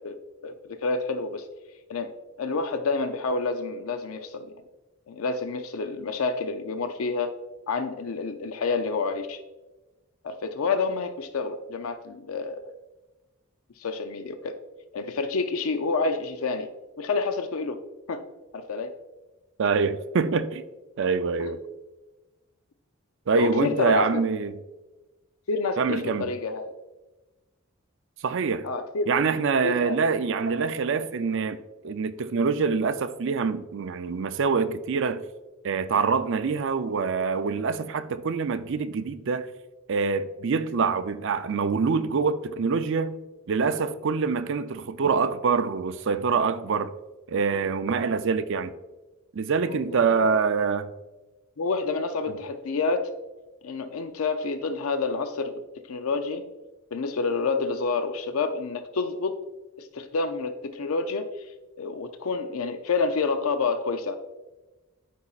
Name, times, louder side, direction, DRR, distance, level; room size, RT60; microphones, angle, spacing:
voice 1, 0.0-1.5 1.9-2.1 2.4-4.5 5.1-7.3 7.7-9.4 10.2-12.7 13.8-14.5 14.9-16.7 17.0-17.8 18.1-18.2 18.5-18.9 21.4-21.5 23.3-24.2 25.5-26.7 28.6-29.1 29.6-30.0 49.7-50.4 51.6-53.1 53.6-55.6 55.9-56.5 56.9-59.4 59.8-61.3 61.8-64.2, left 4 dB, 80° left, 0.5 m, -28 dB
voice 2, 19.6-20.6 21.0-21.6 23.3-24.6 25.8-26.3 28.2-28.7 29.1-31.6 31.8-35.2 35.6-39.5 39.9-43.2 43.5-46.9 47.3-48.7 49.3-50.9, right 5 dB, 60° right, 0.4 m, -25 dB
12.0 x 5.5 x 2.4 m
head